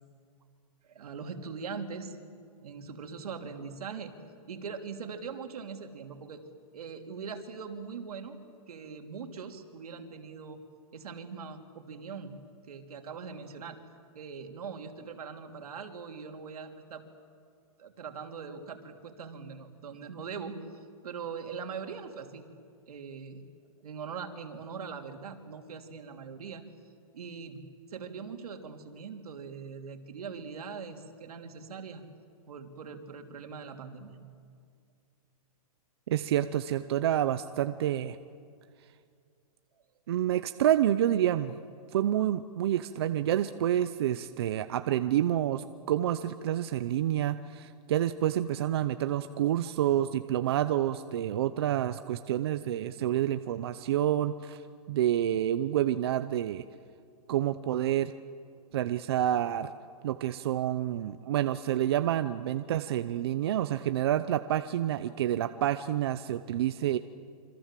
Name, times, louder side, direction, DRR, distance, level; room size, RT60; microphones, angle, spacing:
voice 1, 0.8-2.2 2.6-4.1 4.4-6.4 6.7-8.4 8.7-10.6 10.9-12.3 12.6-13.8 14.1-17.0 17.8-22.5 22.9-23.5 23.8-26.6 27.1-27.6 27.9-32.0 32.5-34.2 39.7-39.8, right 5 dB, 75° right, 4 dB, 3.2 m, -41 dB
voice 2, 36.1-38.2 40.1-41.5 41.9-54.6 54.9-56.6 57.3-58.1 58.7-59.7 60.0-67.0, right 11 dB, 40° right, 11 dB, 0.7 m, -28 dB
27.5 x 25.5 x 7.6 m, 2.3 s
hypercardioid pair, 175°, 19 cm